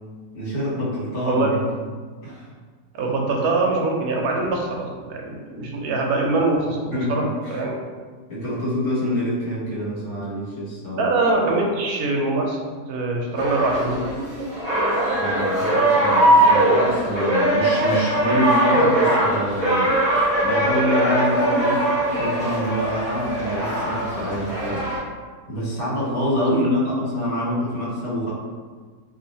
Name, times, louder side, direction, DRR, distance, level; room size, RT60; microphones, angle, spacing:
voice 1, 0.3-1.6 2.2-2.5 3.1-3.2 6.9-7.6 8.3-11.1 15.2-20.0 20.4-21.8 22.2-24.9 25.5-28.3, equal, 65° left, -10 dB, 1.8 m, -26 dB
voice 2, 2.9-7.2 7.5-7.7 11.0-12.6 12.9-14.1, right 3 dB, 75° right, 0 dB, 1.0 m, -23 dB
sound 1, 13.4-25.0, right 1 dB, 30° right, 1.2 m, -21 dB
2.8 x 2.8 x 2.7 m, 1.5 s
omnidirectional pair, 1.7 m